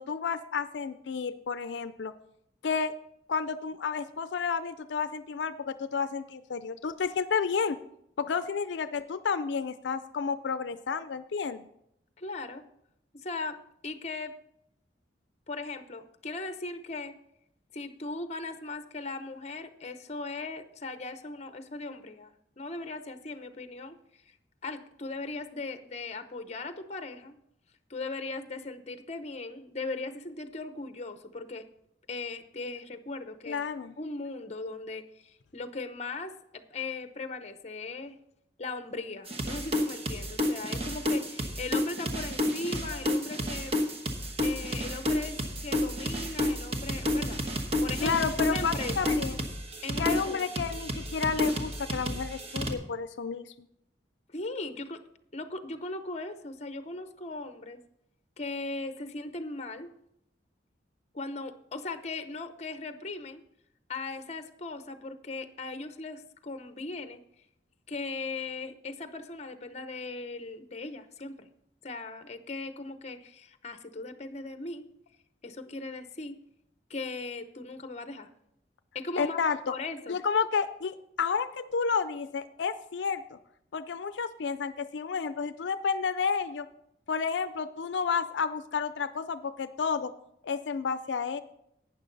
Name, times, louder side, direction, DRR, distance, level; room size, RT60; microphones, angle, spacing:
voice 1, 0.0-2.1 2.6-2.9 3.3-7.8 8.2-11.7 33.5-33.9 42.9-43.0 48.0-49.4 50.0-53.5 79.2-79.7 80.1-83.4 83.7-86.7 87.1-90.1 90.4-91.4, left 5 dB, 80° left, 12 dB, 0.4 m, -31 dB
voice 2, 12.2-12.6 13.1-13.6 13.8-14.3 15.5-17.1 17.7-24.0 24.6-27.4 27.9-31.6 32.1-33.6 34.0-38.2 38.6-43.8 44.4-47.4 47.8-48.2 48.5-49.2 49.8-50.5 54.3-55.0 55.3-57.8 58.4-59.9 61.1-63.4 63.9-67.2 67.9-71.5 71.8-74.9 75.4-76.3 76.9-78.3 78.9-79.4 79.7-80.2, left 3 dB, 40° left, 10 dB, 0.8 m, -38 dB
sound 1, 39.3-52.7, left 1 dB, 35° right, 1.2 m, -31 dB
12.0 x 9.3 x 3.9 m, 0.77 s
head